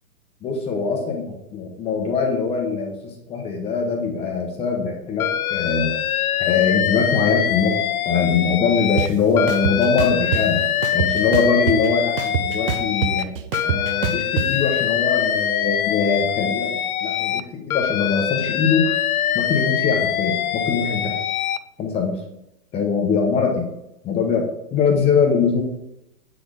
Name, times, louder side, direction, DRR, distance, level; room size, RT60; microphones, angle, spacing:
voice 1, 0.4-1.2 1.5-6.0 6.4-7.8 8.0-10.6 10.9-13.3 13.6-18.9 19.3-21.2 21.8-22.2 22.7-23.7 24.0-25.6, left 5 dB, 15° left, 2 dB, 0.9 m, -22 dB
Alarm, 5.2-9.1 9.4-13.2 13.5-17.4 17.7-21.6, left 10 dB, 65° left, 0.6 m, -23 dB
sound 1, 9.0-9.1 9.5-10.4 10.8-11.9 12.2-14.5, right 9 dB, 40° right, 0.6 m, -24 dB
7.8 x 4.3 x 5.0 m, 0.85 s
hypercardioid pair, 130°, 47 cm